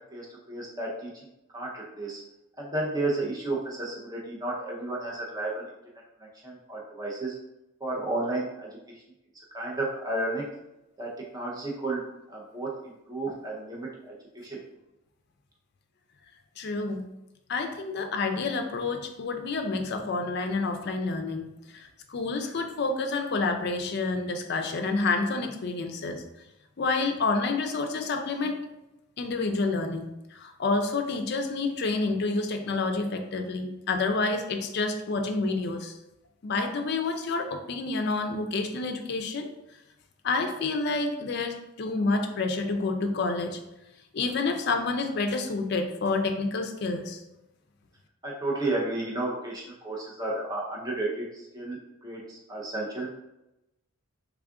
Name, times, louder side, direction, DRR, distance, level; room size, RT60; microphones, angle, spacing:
voice 1, 0.1-1.1 1.5-2.2 2.6-5.6 6.4-7.4 7.8-8.7 9.5-10.4 11.0-12.0 12.3-14.6 48.2-53.1, right 2 dB, 15° right, -4 dB, 0.6 m, -32 dB
voice 2, 16.6-17.0 17.5-21.5 21.7-26.2 26.8-28.6 29.2-35.9 36.4-39.5 40.2-43.6 44.1-47.2, left 3 dB, 50° left, 5 dB, 0.4 m, -29 dB
3.5 x 2.4 x 3.5 m, 0.93 s
head